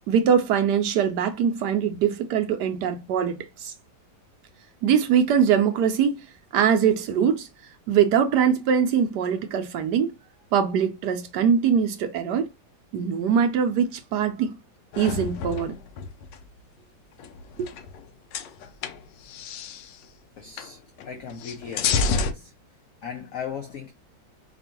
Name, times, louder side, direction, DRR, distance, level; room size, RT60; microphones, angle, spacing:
voice 1, 0.1-3.7 4.8-6.2 6.5-7.5 7.9-10.1 10.5-12.5 12.9-14.6 15.0-15.7, right 7 dB, 75° right, 1.1 m, -22 dB
sound 1, 14.9-16.4 17.2-18.0 18.3-20.0 20.6-20.7 21.0-22.3, left 5 dB, 75° left, 1.3 m, -29 dB
voice 2, 20.4-23.9, left 7 dB, 60° left, 0.9 m, -38 dB
5.2 x 2.4 x 2.9 m
omnidirectional pair, 2.0 m